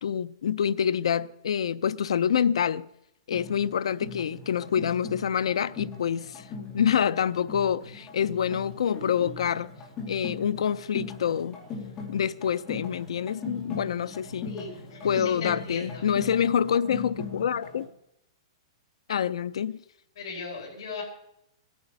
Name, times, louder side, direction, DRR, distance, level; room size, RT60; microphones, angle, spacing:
voice 1, 0.0-2.9 3.3-6.4 6.7-9.7 10.1-11.6 12.1-14.5 15.0-17.9 19.1-19.8, left 8 dB, 80° left, 0.6 m, -26 dB
sound 1, 3.3-17.8, left 4 dB, 20° left, 2.6 m, -40 dB
voice 2, 14.4-16.0 20.2-21.0, left 4 dB, 60° left, 4.4 m, -38 dB
15.5 x 9.5 x 6.8 m
hypercardioid pair, 180°, 3 cm